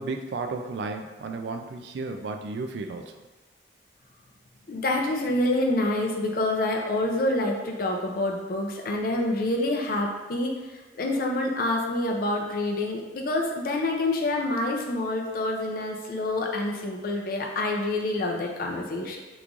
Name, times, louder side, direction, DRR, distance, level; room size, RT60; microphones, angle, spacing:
voice 1, 0.0-3.1, right 3 dB, 70° right, 5 dB, 0.3 m, -33 dB
voice 2, 4.7-10.5 11.0-19.2, left 2 dB, 55° left, 1 dB, 0.5 m, -27 dB
3.0 x 2.5 x 3.6 m, 1.2 s
head